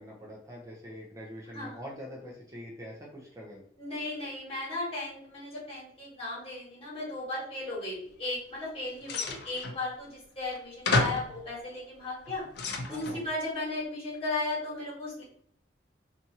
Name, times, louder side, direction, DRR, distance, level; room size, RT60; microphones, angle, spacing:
voice 1, 0.0-3.6 12.9-13.3, equal, 20° right, -4 dB, 0.5 m, -44 dB
voice 2, 3.8-12.4 12.9-15.2, left 2 dB, 35° left, -6 dB, 1.4 m, -36 dB
sound 1, 9.1-9.8 10.5-10.6 10.9-11.3 12.1-13.2, left 2 dB, 65° left, 0.5 m, -30 dB
2.8 x 2.4 x 2.8 m, 0.66 s
head